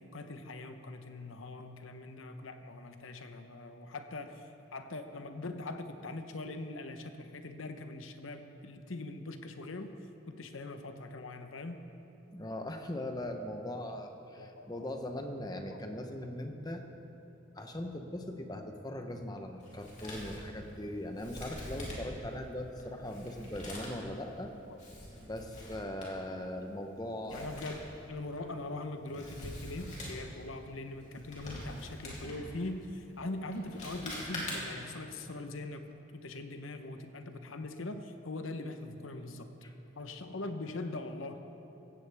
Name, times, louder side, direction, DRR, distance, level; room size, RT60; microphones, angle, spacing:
voice 1, 0.0-4.4 4.7-9.9 10.3-11.8 14.4-14.9 15.7-16.2 27.3-35.8 36.1-39.5 40.0-41.4, left 2 dB, 80° left, 7 dB, 0.9 m, -42 dB
voice 2, 12.3-16.8 17.6-24.5 25.2-27.5 39.6-39.7, left 1 dB, 20° left, 5 dB, 0.8 m, -40 dB
Male speech man speaking, 19.6-34.9, left 1 dB, 35° left, 2.9 m, -45 dB
16.5 x 15.5 x 3.5 m, 3.0 s
head